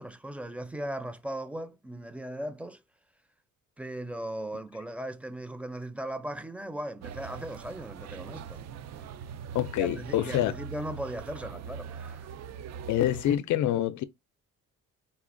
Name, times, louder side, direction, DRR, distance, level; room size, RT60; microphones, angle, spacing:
voice 1, 0.0-2.8 3.8-8.6 8.9-9.2 9.8-12.3, right 1 dB, 5° right, 0.4 m, -38 dB
sound 1, 7.0-13.4, right 7 dB, 60° right, 0.4 m, -42 dB
voice 2, 9.5-10.5 12.9-14.0, left 12 dB, 70° left, 0.4 m, -26 dB
4.2 x 2.8 x 2.6 m
cardioid pair, 90°, 30 cm